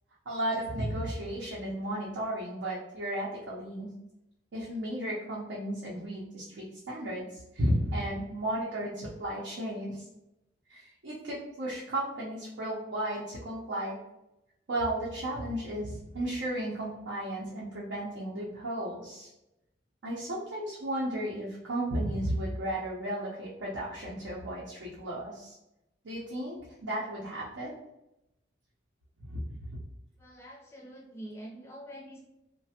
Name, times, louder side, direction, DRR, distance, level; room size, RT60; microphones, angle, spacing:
voice 1, 0.3-3.9 4.5-10.1 10.7-14.0 14.7-19.3 20.0-25.5 26.0-26.6 26.8-27.7 29.3-29.4, right 1 dB, 75° right, -6 dB, 0.6 m, -34 dB
voice 2, 30.2-32.2, equal, 15° left, -2 dB, 0.5 m, -45 dB
3.1 x 2.1 x 2.8 m, 0.89 s
head